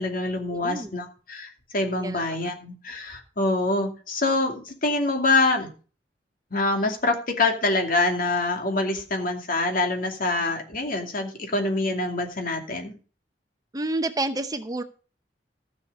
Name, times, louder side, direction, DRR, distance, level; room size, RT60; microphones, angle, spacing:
voice 1, 0.0-5.7 6.5-12.9, left 2 dB, 55° left, 4 dB, 2.5 m, -25 dB
voice 2, 0.5-0.9 2.0-2.5 13.7-14.8, right 2 dB, 20° right, 9 dB, 0.8 m, -29 dB
14.5 x 6.4 x 5.3 m, 0.37 s
head